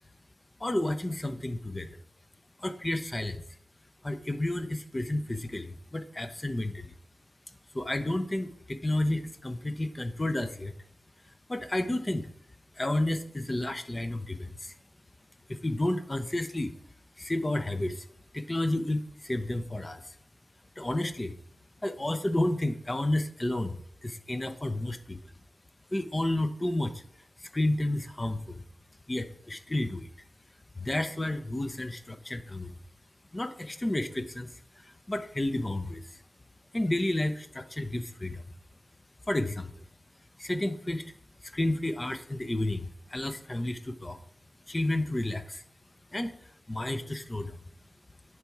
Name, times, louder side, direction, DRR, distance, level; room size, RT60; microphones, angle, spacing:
voice 1, 0.6-2.0 2.6-3.4 4.0-6.9 7.7-10.7 11.5-12.3 12.8-14.7 15.5-16.7 17.2-18.1 18.3-20.2 20.8-21.4 21.8-25.2 25.9-27.0 27.4-28.6 29.1-30.1 30.8-32.7 33.3-36.2 36.7-38.5 39.3-39.9 40.4-41.1 41.4-44.2 44.7-45.6 46.1-47.6, left 1 dB, 25° left, 10 dB, 0.8 m, -31 dB
10.0 x 4.8 x 4.6 m, 0.65 s
cardioid pair, 40°, 0 cm